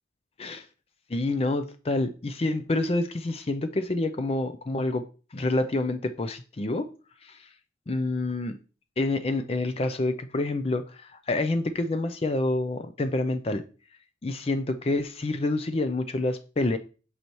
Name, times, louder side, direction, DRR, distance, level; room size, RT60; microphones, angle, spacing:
voice 1, 1.1-5.1 5.3-6.9 7.2-7.5 7.9-8.6 9.0-13.6 14.2-16.8, left 2 dB, 30° left, 0.4 m, -27 dB
8.2 x 5.6 x 3.0 m
head